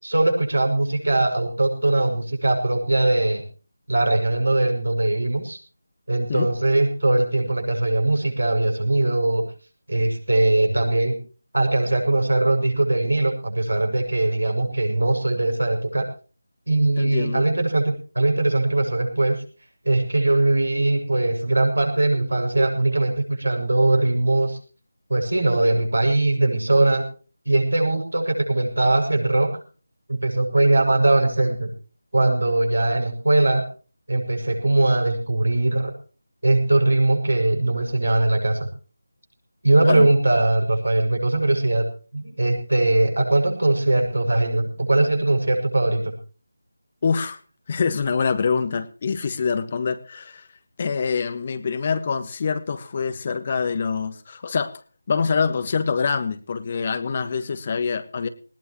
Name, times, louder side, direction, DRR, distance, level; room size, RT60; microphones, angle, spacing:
voice 1, 0.0-3.4 3.9-5.6 6.1-9.4 9.9-11.1 11.5-16.0 16.7-17.8 18.1-19.4 19.8-24.6 25.1-27.1 27.4-29.5 30.1-31.7 32.1-33.6 34.1-35.9 36.4-38.7 39.6-41.8 42.1-46.1, right 2 dB, 75° right, 3 dB, 6.6 m, -20 dB
voice 2, 17.0-17.5 39.8-40.1 47.0-47.4 47.7-50.5 50.8-54.8 55.1-58.3, left 5 dB, 35° left, 11 dB, 1.4 m, -25 dB
19.5 x 18.5 x 3.1 m, 0.38 s
figure-of-eight pair, 160°, 0 cm